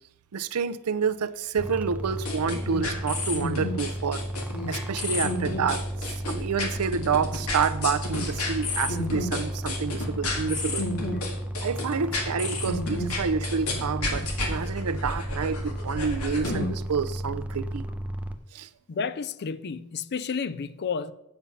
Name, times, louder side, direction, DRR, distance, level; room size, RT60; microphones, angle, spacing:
voice 1, 0.3-4.3 4.7-5.8 6.3-10.9 11.6-17.9 18.5-18.7, right 6 dB, 90° right, 0.5 m, -28 dB
sound 1, 1.6-18.4, right 1 dB, 5° right, 0.5 m, -34 dB
sound 2, 2.3-16.7, left 2 dB, 80° left, 1.9 m, -31 dB
voice 2, 18.9-21.1, left 5 dB, 50° left, 0.4 m, -31 dB
8.6 x 7.1 x 5.6 m
head